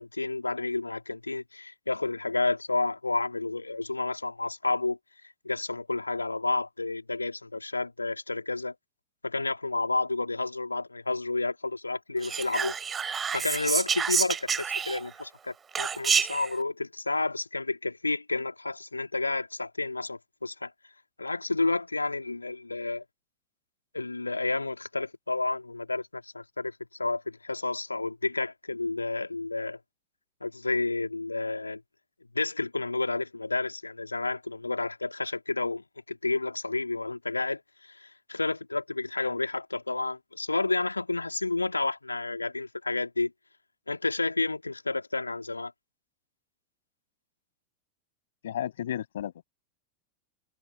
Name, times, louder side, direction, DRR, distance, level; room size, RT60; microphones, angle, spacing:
voice 1, 0.0-5.0 5.4-8.8 9.2-12.7 13.0-20.7 21.2-23.0 23.9-29.8 30.4-31.8 32.3-43.3 43.9-45.7, left 3 dB, 80° left, 3.1 m, -30 dB
Whispering, 12.2-15.2 15.7-16.5, right 6 dB, 20° right, 7.8 m, -28 dB
voice 2, 48.4-49.4, left 10 dB, 60° left, 7.5 m, -33 dB
open air
figure-of-eight pair, 90°, 0 cm